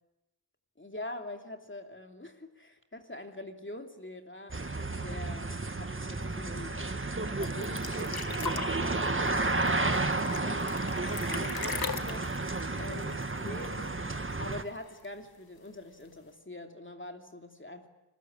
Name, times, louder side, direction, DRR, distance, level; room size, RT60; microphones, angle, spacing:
voice 1, 0.8-4.6 5.0-6.8 7.3-10.6 10.9-14.0 14.4-17.9, left 1 dB, 30° left, 4 dB, 2.9 m, -44 dB
sound 1, 4.5-14.6, right 2 dB, 30° right, 1.7 m, -32 dB
sound 2, 7.4-13.8 14.1-14.2 14.5-15.2 16.1-16.2, left 5 dB, 65° left, 1.6 m, -40 dB
29.5 x 21.0 x 8.9 m, 0.94 s
wide cardioid pair, 65°, 40 cm